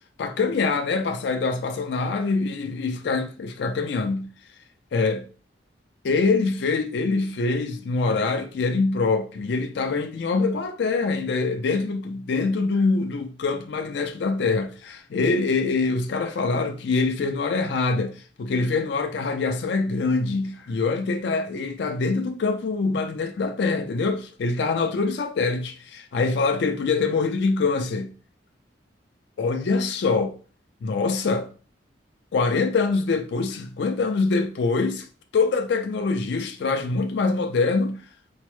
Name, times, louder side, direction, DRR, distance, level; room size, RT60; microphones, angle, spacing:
voice 1, 0.2-4.3 4.9-5.2 6.0-28.1 29.4-30.4 30.8-31.5 32.3-35.1 35.3-38.0, left 4 dB, 60° left, 0.4 m, -24 dB
4.3 x 2.0 x 3.1 m
head